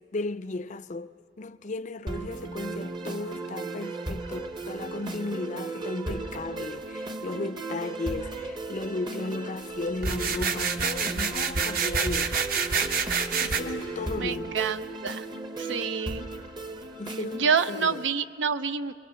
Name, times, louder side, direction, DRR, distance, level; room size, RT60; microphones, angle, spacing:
voice 1, 0.0-12.4 13.4-14.6 17.0-18.0, left 2 dB, 40° left, 0.5 m, -35 dB
sound 1, 2.1-18.1, right 3 dB, 25° right, 0.8 m, -36 dB
sound 2, 10.0-13.6, right 5 dB, 50° right, 1.0 m, -27 dB
voice 2, 14.2-15.3 15.6-16.3 17.3-18.9, right 6 dB, 80° right, 0.6 m, -28 dB
24.5 x 23.5 x 6.9 m
head